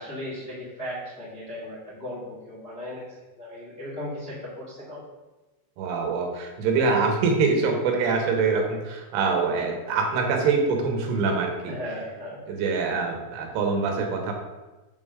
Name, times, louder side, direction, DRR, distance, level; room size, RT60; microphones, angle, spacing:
voice 1, 0.0-3.0 3.4-5.0 11.7-12.4, left 1 dB, 30° left, -8 dB, 1.2 m, -36 dB
voice 2, 5.8-11.7 12.5-14.3, right 4 dB, 85° right, 2 dB, 3.7 m, -24 dB
7.9 x 3.7 x 6.6 m, 1.1 s
omnidirectional pair, 5.4 m